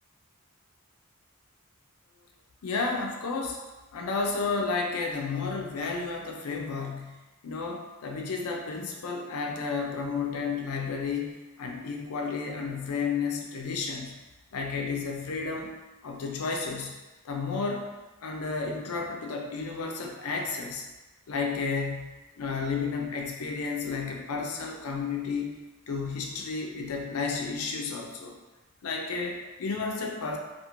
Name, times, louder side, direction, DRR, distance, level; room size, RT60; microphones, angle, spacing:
voice 1, 2.6-3.6 3.9-14.2 14.5-15.7 16.0-16.9 17.2-17.9 18.2-20.8 21.3-25.6 25.9-28.4 28.8-30.4, left 4 dB, 70° left, 1 dB, 0.5 m, -32 dB
2.5 x 2.4 x 2.9 m, 1.1 s
head